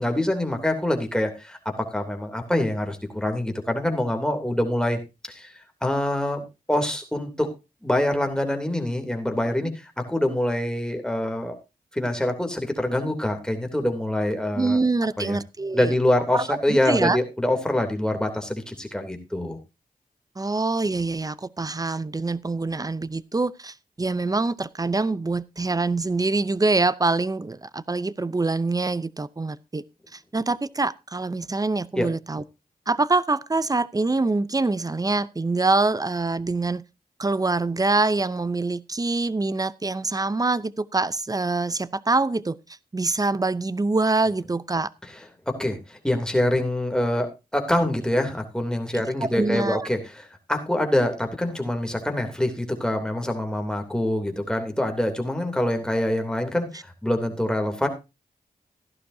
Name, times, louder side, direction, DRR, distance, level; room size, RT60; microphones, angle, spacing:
voice 1, 0.0-1.6 1.9-5.0 5.3-5.5 5.8-7.5 7.8-11.5 11.9-14.8 15.2-15.4 15.7-19.6 32.0-32.1 45.5-50.2 50.5-57.9, left 1 dB, 5° left, 3.0 m, -25 dB
voice 2, 14.5-15.9 16.3-17.2 20.4-29.8 30.1-32.4 32.9-36.8 37.2-42.6 42.9-44.9 48.9-49.9, right 3 dB, 25° right, 0.6 m, -25 dB
14.0 x 11.5 x 2.7 m
cardioid pair, 55°, 16 cm